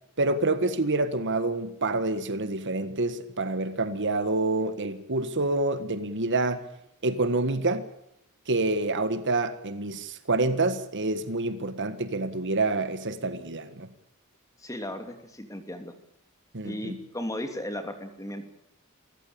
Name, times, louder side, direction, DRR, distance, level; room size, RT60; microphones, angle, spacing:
voice 1, 0.2-6.6 7.0-7.9 8.5-13.9 16.5-17.0, right 2 dB, 55° right, 1.6 m, -27 dB
voice 2, 14.6-15.9 16.6-18.5, left 1 dB, 15° left, 2.8 m, -36 dB
27.5 x 14.5 x 8.7 m
head